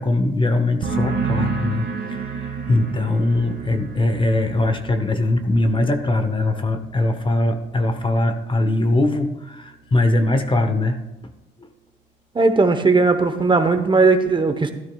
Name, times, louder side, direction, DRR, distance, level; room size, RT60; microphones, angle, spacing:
voice 1, 0.0-11.0 11.6-11.7, left 2 dB, 25° left, 8 dB, 0.9 m, -21 dB
sound 1, 0.8-8.3 8.6-9.1, right 5 dB, 60° right, 1.7 m, -31 dB
voice 2, 12.3-14.7, right 3 dB, 25° right, 8 dB, 0.9 m, -17 dB
13.5 x 12.5 x 2.3 m, 0.98 s
cardioid pair, 90°, 20 cm